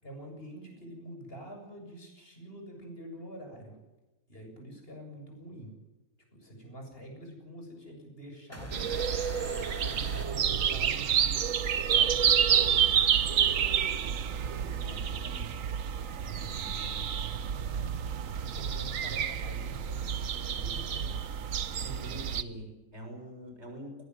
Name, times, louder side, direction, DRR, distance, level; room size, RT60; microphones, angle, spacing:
voice 1, 0.0-3.8 4.3-5.7 6.3-8.9 9.8-11.5 11.8-15.5 16.2-17.2 18.3-21.2 21.6-22.3, right 1 dB, 40° left, 3 dB, 7.6 m, -47 dB
sound 1, 8.5-11.3, equal, 10° left, 4.6 m, -43 dB
sound 2, 8.7-22.4, right 8 dB, 65° right, 1.4 m, -29 dB
voice 2, 21.8-24.1, equal, 50° right, 4 dB, 7.1 m, -44 dB
21.0 x 19.0 x 9.5 m, 1.0 s
omnidirectional pair, 1.5 m